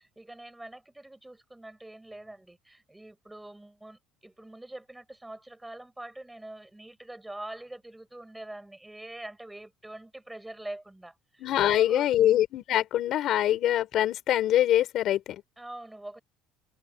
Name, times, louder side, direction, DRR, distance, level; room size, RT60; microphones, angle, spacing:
voice 1, 0.0-12.1 15.6-16.2, right 1 dB, 5° right, 6.3 m, -44 dB
voice 2, 11.4-15.4, left 12 dB, 40° left, 4.7 m, -24 dB
cardioid pair, 180°, 0 cm